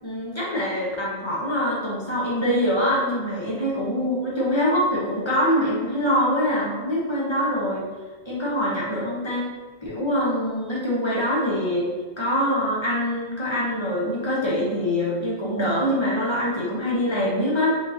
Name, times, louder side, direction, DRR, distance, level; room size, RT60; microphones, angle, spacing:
voice 1, 0.0-7.8 8.2-9.5 9.8-11.9 12.2-17.8, equal, 25° left, -6 dB, 1.1 m, -24 dB
5.1 x 3.7 x 2.8 m, 1.3 s
omnidirectional pair, 1.1 m